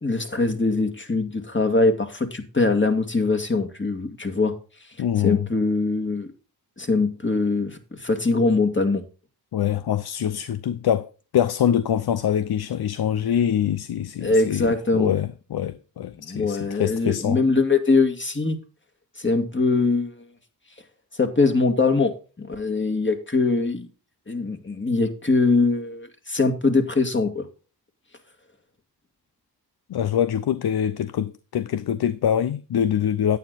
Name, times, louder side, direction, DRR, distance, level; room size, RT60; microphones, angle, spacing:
voice 1, 0.0-4.6 5.2-6.3 6.8-9.0 14.2-15.1 16.2-18.6 19.2-20.1 21.2-22.1 22.4-23.9 24.3-27.5, left 3 dB, 30° left, 2.0 m, -22 dB
voice 2, 5.0-5.5 9.5-17.4 29.9-33.4, left 9 dB, 70° left, 0.6 m, -24 dB
9.3 x 9.1 x 3.9 m
cardioid pair, 40°, 39 cm